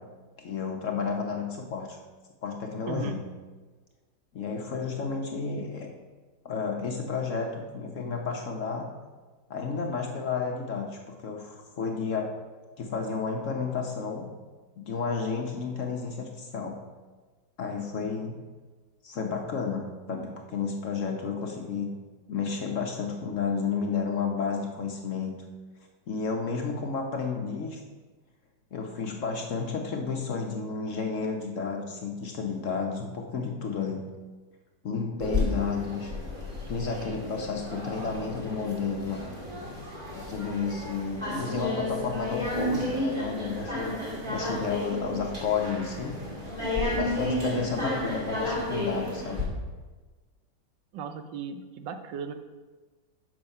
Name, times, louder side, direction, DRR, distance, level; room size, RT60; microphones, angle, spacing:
voice 1, 0.4-2.0 2.4-3.2 4.3-5.9 6.4-8.9 9.5-12.3 12.8-14.3 14.8-16.8 17.6-18.4 19.0-21.9 22.3-25.3 26.1-27.8 28.7-34.0 34.8-36.1 36.7-39.2 40.1-43.9 44.3-46.1 46.9-49.4, left 5 dB, 55° left, 2 dB, 1.0 m, -31 dB
voice 2, 2.9-3.2 50.9-52.3, right 6 dB, 85° right, 8 dB, 1.4 m, -36 dB
sound 1, 35.2-49.4, left 1 dB, 25° right, 2.2 m, -32 dB
7.5 x 5.6 x 5.4 m, 1.3 s
omnidirectional pair, 1.9 m